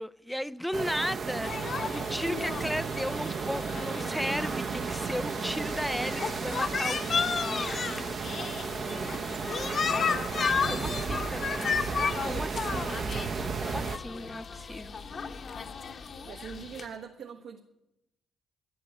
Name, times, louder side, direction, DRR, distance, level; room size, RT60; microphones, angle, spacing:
voice 1, 0.0-8.1 10.7-11.9 12.2-15.0, equal, ahead, 0.4 m, -36 dB
sound 1, 0.7-14.0, right 5 dB, 50° right, 0.7 m, -34 dB
sound 2, 1.4-16.9, left 5 dB, 50° left, 1.0 m, -34 dB
voice 2, 10.4-11.2 16.2-17.6, right 6 dB, 75° right, 1.4 m, -44 dB
11.5 x 10.5 x 8.1 m
cardioid pair, 90°, 0 cm